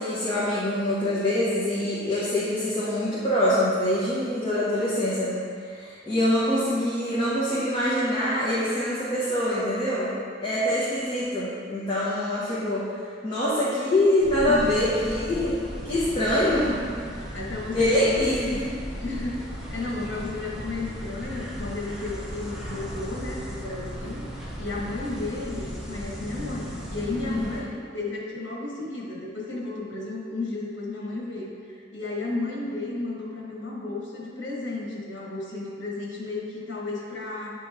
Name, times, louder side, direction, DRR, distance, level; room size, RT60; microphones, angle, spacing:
voice 1, 0.0-10.1 10.4-16.8 17.7-18.7 27.2-27.4, left 1 dB, 25° left, -10 dB, 1.0 m, -25 dB
sound 1, 14.2-27.6, equal, 5° right, 0.8 m, -36 dB
voice 2, 14.5-15.1 16.3-16.5 17.3-18.6 19.0-19.4 19.7-24.3 24.5-37.7, left 2 dB, 90° left, -4 dB, 1.3 m, -33 dB
9.1 x 3.1 x 3.5 m, 2.2 s
head